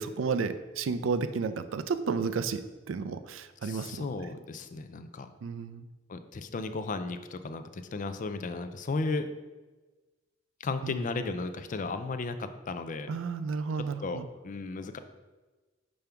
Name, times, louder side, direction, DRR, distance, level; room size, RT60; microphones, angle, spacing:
voice 1, 0.0-2.6 2.9-4.1 5.4-5.9 10.8-11.0 13.1-14.3, right 5 dB, 75° right, 11 dB, 0.4 m, -32 dB
voice 2, 3.6-5.3 6.1-9.3 10.6-13.1 13.8-15.0, left 3 dB, 40° left, 9 dB, 0.4 m, -35 dB
5.2 x 3.4 x 5.7 m, 1.2 s
head